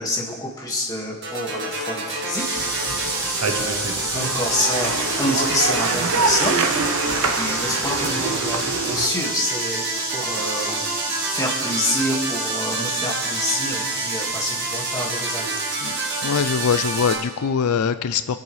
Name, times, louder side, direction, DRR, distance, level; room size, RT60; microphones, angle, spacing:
voice 1, 0.0-2.4 3.1-9.8 10.1-15.6, left 1 dB, 15° left, -3 dB, 2.0 m, -27 dB
sound 1, 1.2-17.2, right 3 dB, 55° right, 2.0 m, -30 dB
sound 2, 2.4-17.2, right 2 dB, 20° right, 4.1 m, -29 dB
sound 3, 2.5-9.1, right 4 dB, 80° right, 0.9 m, -26 dB
voice 2, 15.8-18.4, left 6 dB, 80° left, 12 dB, 0.4 m, -23 dB
23.5 x 8.5 x 3.3 m, 1.4 s
head